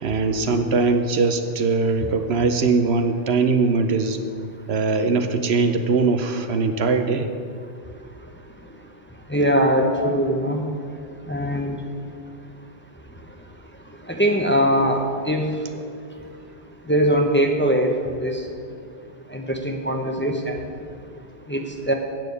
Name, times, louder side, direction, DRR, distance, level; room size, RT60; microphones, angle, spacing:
voice 1, 0.0-4.2 4.7-7.3, right 4 dB, 65° right, 7 dB, 1.0 m, -21 dB
voice 2, 9.3-10.6 11.3-11.8 14.1-15.8 16.9-18.4 19.3-20.6 21.5-21.9, equal, 10° left, 2 dB, 0.8 m, -21 dB
9.3 x 6.9 x 8.0 m, 2.3 s
omnidirectional pair, 1.2 m